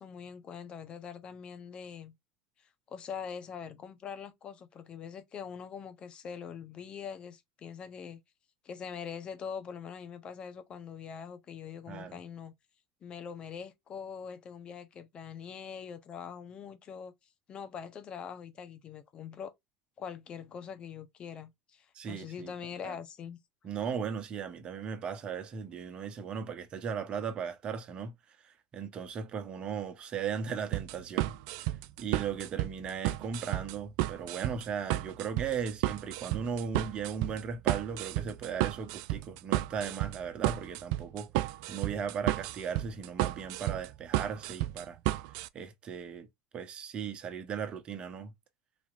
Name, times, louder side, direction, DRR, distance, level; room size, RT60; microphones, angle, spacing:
voice 1, 0.0-2.1 2.9-8.2 8.6-12.5 13.0-17.1 17.5-19.5 20.0-23.4, left 7 dB, 40° left, 1.0 m, -43 dB
voice 2, 11.9-12.2 21.9-22.5 22.8-23.0 23.6-31.3 32.0-45.0 45.5-46.3 46.5-48.3, right 6 dB, 40° right, 1.0 m, -37 dB
sound 1, 30.7-45.5, right 17 dB, 70° right, 0.4 m, -32 dB
4.3 x 2.9 x 2.5 m
hypercardioid pair, 95°, 3 cm